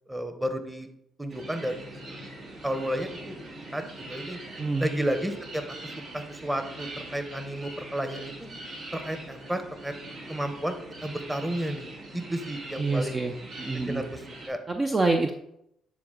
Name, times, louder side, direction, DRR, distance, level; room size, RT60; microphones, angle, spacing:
voice 1, 0.1-0.9 1.2-1.8 2.0-2.1 2.6-3.4 3.7-3.8 4.1-4.4 4.8-5.6 6.1-8.5 8.9-9.9 10.3-10.8 11.0-13.2 13.7-14.6, right 1 dB, 10° right, 8 dB, 1.0 m, -32 dB
sound 1, 1.3-14.5, right 1 dB, 65° right, 2.2 m, -42 dB
voice 2, 4.6-4.9 12.8-14.0 14.7-15.3, right 3 dB, 30° right, 4 dB, 0.5 m, -26 dB
9.6 x 3.9 x 3.8 m, 0.78 s
supercardioid pair, 75°, 0 cm